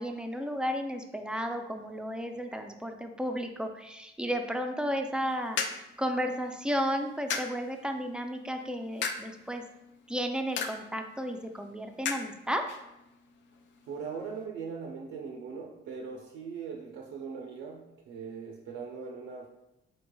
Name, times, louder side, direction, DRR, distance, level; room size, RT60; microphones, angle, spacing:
voice 1, 0.0-5.6 6.0-9.6 10.1-12.7, equal, 5° right, 5 dB, 0.3 m, -33 dB
sound 1, 5.0-14.5, left 5 dB, 70° left, 0.4 m, -40 dB
voice 2, 13.9-19.5, right 5 dB, 80° right, 1 dB, 0.5 m, -40 dB
4.2 x 3.1 x 2.2 m, 0.90 s
cardioid pair, 90°, 20 cm